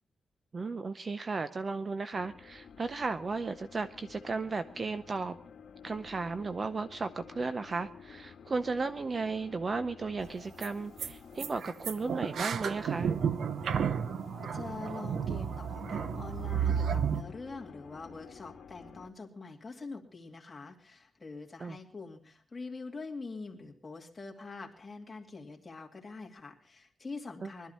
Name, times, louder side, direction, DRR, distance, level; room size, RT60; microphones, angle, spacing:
voice 1, 0.5-5.4 5.8-13.1 21.6-21.8 27.4-27.5, right 4 dB, 35° right, 11 dB, 0.6 m, -35 dB
sound 1, 2.1-19.1, left 7 dB, 65° left, 1.5 m, -51 dB
sound 2, 10.2-10.3 10.6-10.7 11.0-11.1 11.4-17.2, right 7 dB, 75° right, 0.7 m, -32 dB
voice 2, 14.4-27.7, left 3 dB, 25° left, 0 dB, 2.5 m, -44 dB
20.5 x 13.0 x 4.2 m, 0.39 s
cardioid pair, 105°, 0 cm